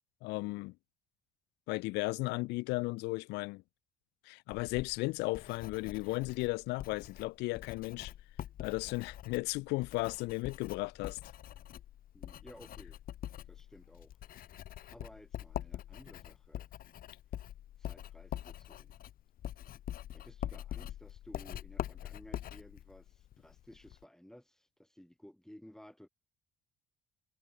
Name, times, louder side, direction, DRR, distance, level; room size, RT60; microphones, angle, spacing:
voice 1, 0.2-0.7 1.7-3.6 4.3-8.1 8.6-11.2, left 23 dB, 90° left, 0.5 m, -35 dB
Writing, 4.5-24.0, left 12 dB, 60° left, 1.2 m, -45 dB
voice 2, 12.1-13.0 13.5-14.5 14.9-16.7 17.8-19.0 20.1-26.1, equal, 5° left, 3.9 m, -56 dB
cardioid pair, 110°, 17 cm